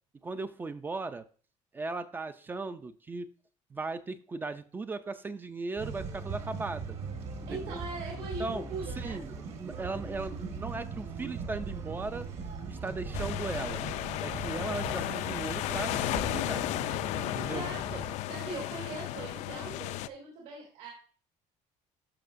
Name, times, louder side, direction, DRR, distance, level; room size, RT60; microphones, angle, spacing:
voice 1, 0.2-1.2 1.7-3.3 3.7-7.0 7.5-7.8 8.4-8.7 9.0-12.3 12.7-13.8 14.2-16.7 17.3-17.7, right 3 dB, 15° right, 0.3 m, -37 dB
sound 1, 5.8-18.2, right 4 dB, 50° right, 1.3 m, -40 dB
voice 2, 7.5-9.2 12.8-13.3 17.5-18.0 18.3-20.9, right 3 dB, 75° right, 3.1 m, -41 dB
sound 2, 13.1-20.1, left 15 dB, 60° left, 0.4 m, -34 dB
13.5 x 5.8 x 2.5 m
cardioid pair, 170°, 13 cm